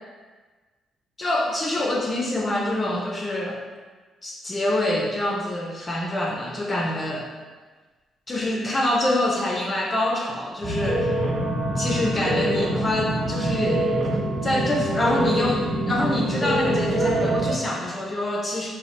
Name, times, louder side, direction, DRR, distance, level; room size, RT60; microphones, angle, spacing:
voice 1, 1.2-3.6 4.2-7.3 8.3-11.1 11.8-13.9 14.4-18.7, left 1 dB, 30° left, -2 dB, 0.5 m, -25 dB
sound 1, 10.6-17.5, right 1 dB, 60° right, 1.0 m, -25 dB
2.8 x 2.1 x 3.1 m, 1.3 s
cardioid pair, 90°, 0 cm